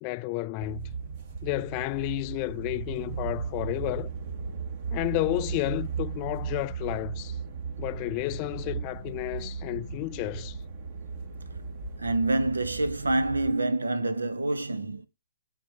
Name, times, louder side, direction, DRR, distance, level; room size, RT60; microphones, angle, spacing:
voice 1, 0.0-0.9 1.4-4.1 4.9-7.4 7.8-10.6, left 20 dB, 35° left, 0.3 m, -31 dB
sound 1, 0.6-13.5, right 6 dB, 45° right, 1.5 m, -36 dB
voice 2, 12.0-15.1, right 2 dB, 85° right, 0.9 m, -27 dB
7.4 x 3.8 x 5.8 m
figure-of-eight pair, 125°, 0 cm